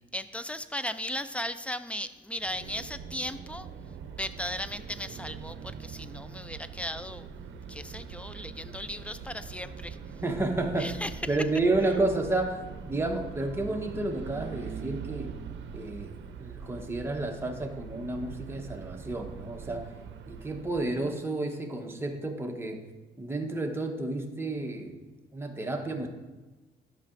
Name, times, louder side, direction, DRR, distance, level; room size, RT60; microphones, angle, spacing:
voice 1, 0.1-3.7 4.2-7.3 7.7-10.0 10.8-11.2, left 1 dB, 5° left, 12 dB, 0.3 m, -36 dB
sound 1, 2.3-21.1, right 6 dB, 70° right, 0.6 m, -42 dB
voice 2, 10.2-10.9 11.3-15.4 15.7-19.9 20.3-22.8 23.2-25.0 25.3-26.1, right 2 dB, 10° right, 2 dB, 1.0 m, -31 dB
11.5 x 5.5 x 2.5 m, 1.2 s
cardioid pair, 90°, 20 cm